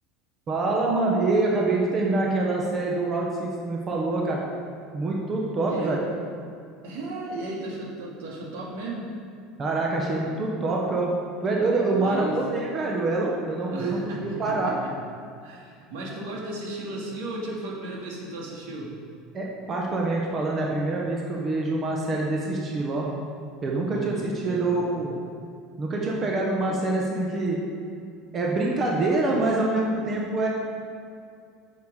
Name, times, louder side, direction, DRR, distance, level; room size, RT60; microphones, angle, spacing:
voice 1, 0.5-4.4 4.9-6.0 9.6-11.1 11.4-14.8 19.3-23.1 23.6-25.2 25.8-27.6 28.3-30.5, right 2 dB, 25° right, -2 dB, 1.0 m, -25 dB
voice 2, 5.6-6.0 6.8-9.1 11.9-12.4 13.7-14.9 15.4-18.9 23.8-24.7, right 2 dB, 80° right, -3 dB, 2.3 m, -35 dB
9.2 x 6.6 x 4.8 m, 2.4 s
cardioid pair, 160°, 0 cm